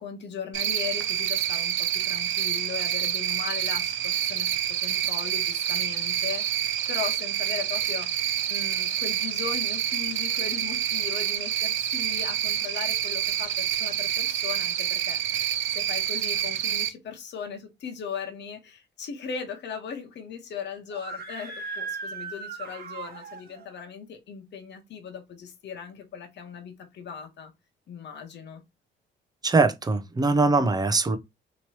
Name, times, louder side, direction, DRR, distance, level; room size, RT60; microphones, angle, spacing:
voice 1, 0.0-27.5 27.9-28.6, left 7 dB, 60° left, 1.1 m, -38 dB
Cricket, 0.5-16.9, right 11 dB, 75° right, 0.6 m, -27 dB
Screaming, 20.9-23.7, right 4 dB, 50° right, 1.2 m, -37 dB
voice 2, 29.4-31.2, right 3 dB, 20° right, 0.6 m, -22 dB
3.1 x 3.0 x 2.8 m
cardioid pair, 90°, 20 cm